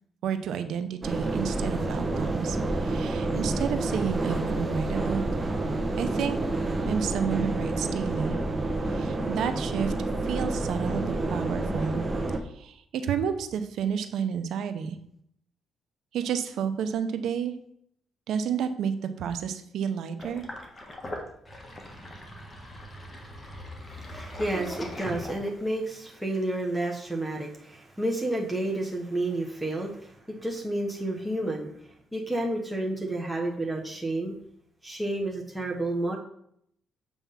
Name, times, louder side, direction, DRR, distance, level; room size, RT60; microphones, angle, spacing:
voice 1, 0.2-5.2 5.9-6.4 6.8-8.4 8.9-9.9 10.2-12.0 12.6-15.0 16.1-17.5 18.3-20.4, right 7 dB, 75° right, 9 dB, 0.7 m, -30 dB
sound 1, 1.0-12.4, right 2 dB, 20° right, 1.0 m, -29 dB
Sink (filling or washing), 20.2-25.8, left 1 dB, 25° left, 1.4 m, -40 dB
voice 2, 23.9-34.3 34.8-36.2, right 1 dB, 5° right, -2 dB, 1.2 m, -31 dB
7.1 x 3.5 x 5.7 m, 0.70 s
cardioid pair, 90°, 0 cm